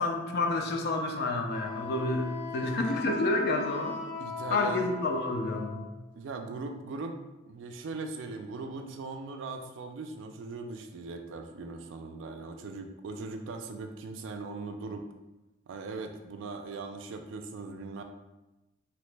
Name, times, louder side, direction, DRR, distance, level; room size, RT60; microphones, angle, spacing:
voice 1, 0.0-4.0 4.5-5.9, left 2 dB, 55° left, 4 dB, 0.4 m, -29 dB
Wind instrument woodwind instrument, 1.5-5.9, left 4 dB, 85° left, 1.5 m, -38 dB
voice 2, 4.2-4.9 6.1-7.2 7.5-15.1 15.7-18.0, right 3 dB, 70° right, 6 dB, 0.3 m, -39 dB
2.9 x 2.1 x 3.2 m, 1.0 s
head